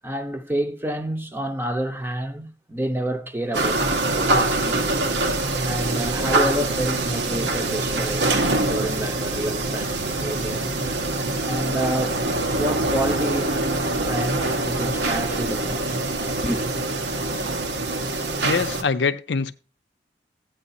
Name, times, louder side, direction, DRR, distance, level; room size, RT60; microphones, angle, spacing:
voice 1, 0.0-4.9 5.6-10.7 11.4-12.2 12.6-13.8 14.0-16.0 16.4-16.6, right 1 dB, 10° right, 0.7 m, -29 dB
sound 1, 3.5-18.8, right 2 dB, 85° right, 1.1 m, -24 dB
voice 2, 18.4-19.5, left 5 dB, 85° left, 0.6 m, -24 dB
14.0 x 9.0 x 2.7 m
head